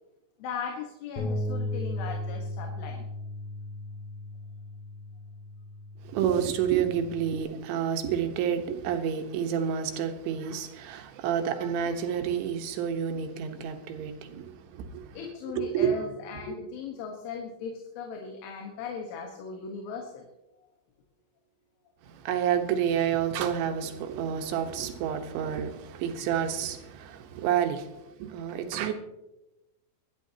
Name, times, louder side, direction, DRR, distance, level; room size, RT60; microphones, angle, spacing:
voice 1, 0.4-3.1 15.1-20.3 20.6-20.7, left 5 dB, 80° left, 3.8 m, -38 dB
Bass guitar, 1.2-7.4, left 1 dB, 45° left, 2.1 m, -36 dB
voice 2, 6.0-15.2 15.6-16.1 22.0-28.9, right 8 dB, 75° right, 3.4 m, -29 dB
24.0 x 11.5 x 2.9 m
omnidirectional pair, 5.4 m